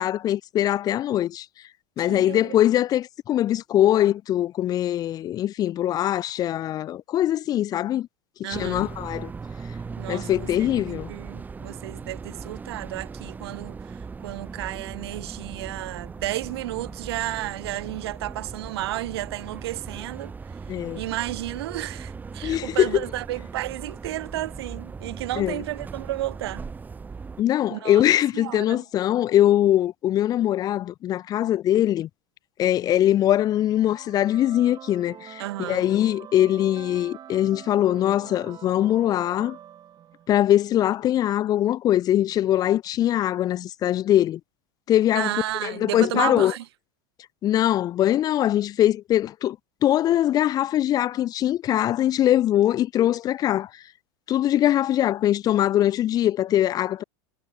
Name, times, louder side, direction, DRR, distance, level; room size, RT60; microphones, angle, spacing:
voice 1, 0.0-1.5 2.0-8.1 8.5-9.3 10.1-11.1 20.7-21.0 22.4-23.0 25.4-25.6 27.4-32.1 32.6-39.6 40.3-44.4 44.9-45.3 45.6-46.5 47.4-49.6 49.8-53.8 54.3-57.0, left 12 dB, 30° left, 0.5 m, -22 dB
voice 2, 2.0-2.6 8.4-8.9 10.0-20.3 20.9-26.6 27.7-28.0 28.3-28.8 35.4-35.9 45.1-46.6, right 16 dB, 90° right, 0.5 m, -32 dB
sound 1, 8.5-27.4, right 5 dB, 15° right, 0.7 m, -39 dB
sound 2, 33.6-40.5, right 10 dB, 30° right, 4.0 m, -45 dB
supercardioid pair, 130°, 13 cm